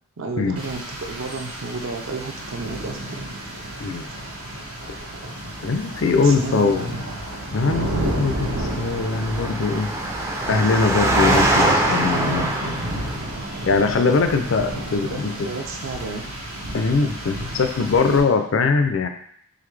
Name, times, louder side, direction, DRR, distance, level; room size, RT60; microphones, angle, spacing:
voice 1, 0.2-3.3 6.2-7.0 12.1-12.4 14.9-16.2, right 3 dB, 65° right, 3 dB, 0.6 m, -32 dB
Rain, 0.6-18.2, right 1 dB, 85° right, 1.0 m, -32 dB
voice 2, 5.6-7.0 7.5-9.9 10.5-13.1 13.7-15.3 16.7-19.1, left 4 dB, 60° left, 6 dB, 0.4 m, -21 dB
Engine, 7.8-13.4, right 2 dB, 15° right, 0.3 m, -24 dB
3.9 x 3.2 x 3.2 m, 0.64 s
head